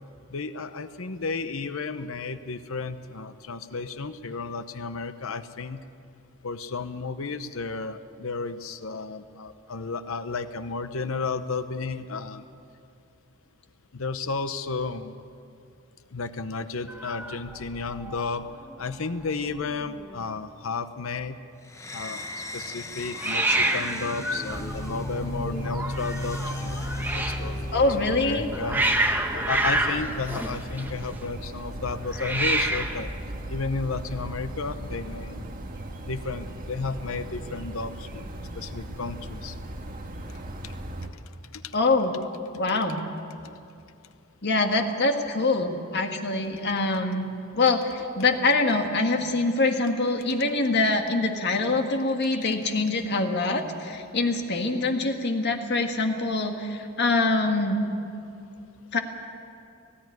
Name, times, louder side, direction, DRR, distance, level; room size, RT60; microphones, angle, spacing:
voice 1, 0.3-5.8 6.4-12.4 13.9-15.1 16.1-18.5 18.8-21.4 21.9-28.9 29.3-33.1 33.5-35.5 36.0-39.6 41.5-41.7 43.4-43.5, left 4 dB, 70° left, 11 dB, 0.8 m, -33 dB
Hiss, 16.9-18.2 18.5-18.9 19.2-19.3 19.5-20.2 23.2-27.5 28.2-31.2 32.1-33.1, right 1 dB, 10° right, 1.2 m, -28 dB
sound 1, 21.7-28.3, left 2 dB, 15° left, 0.9 m, -36 dB
sound 2, 24.5-41.1, right 1 dB, 40° right, 1.5 m, -37 dB
voice 2, 27.7-28.5 41.7-42.1 42.5-43.0 44.4-47.2 47.5-57.8 58.9-59.0, left 3 dB, 50° left, 4 dB, 1.7 m, -24 dB
18.5 x 16.0 x 9.5 m, 2.5 s
head